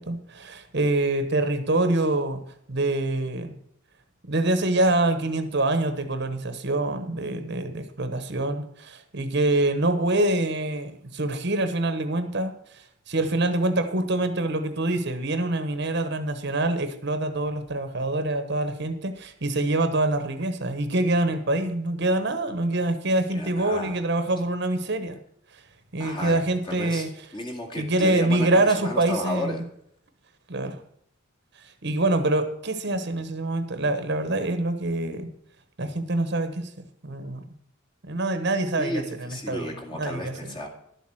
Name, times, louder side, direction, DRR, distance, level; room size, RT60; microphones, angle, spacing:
voice 1, 0.0-2.4 2.7-3.6 4.3-25.2 25.5-25.6 25.9-27.1 27.8-29.6 30.5-30.8 31.6-35.3 35.8-37.4 38.0-40.6, right 2 dB, 55° right, 9 dB, 1.1 m, -25 dB
voice 2, 23.3-24.0 26.0-29.6 38.8-40.7, left 1 dB, 25° left, 2 dB, 2.1 m, -33 dB
12.0 x 7.6 x 6.2 m, 0.71 s
head